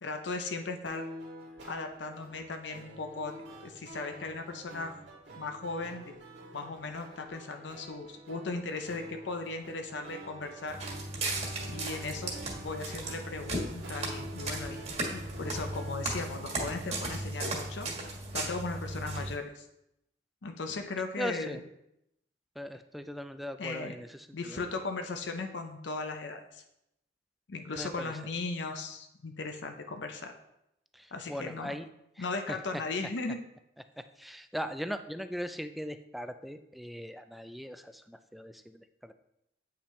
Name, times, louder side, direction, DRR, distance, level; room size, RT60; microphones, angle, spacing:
voice 1, 0.0-1.1 1.6-3.3 3.6-5.0 5.3-6.0 6.5-10.8 11.7-12.3 12.6-14.8 15.1-17.9 18.3-19.7 20.4-21.6 23.6-23.9 24.3-26.6 27.5-30.3 31.1-31.7 32.2-33.4, left 3 dB, 80° left, 5 dB, 0.7 m, -37 dB
sound 1, 0.8-16.1, equal, 85° right, 2.3 m, -47 dB
Walk footsteps, 10.7-19.4, right 2 dB, 40° right, 1.5 m, -36 dB
voice 2, 21.2-21.6 22.6-24.6 27.7-28.1 30.9-31.9 32.2-32.6 34.2-39.1, equal, ahead, 9 dB, 0.3 m, -39 dB
8.4 x 5.7 x 3.2 m, 0.82 s
head